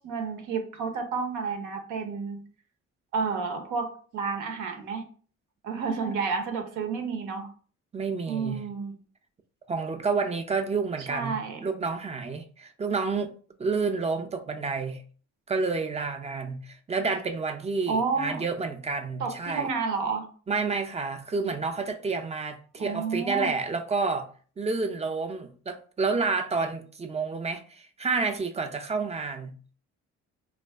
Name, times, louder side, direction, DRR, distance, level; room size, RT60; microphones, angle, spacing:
voice 1, 0.0-2.4 3.1-5.1 5.6-7.5 8.3-8.9 11.1-11.6 17.9-18.4 19.2-20.3 22.8-23.5, right 5 dB, 85° right, 0.7 m, -30 dB
voice 2, 7.9-8.6 9.7-13.3 13.6-15.0 15.5-19.7 20.5-24.3 24.6-29.6, right 4 dB, 20° right, 0.4 m, -29 dB
2.4 x 2.3 x 3.4 m
cardioid pair, 90°, 30 cm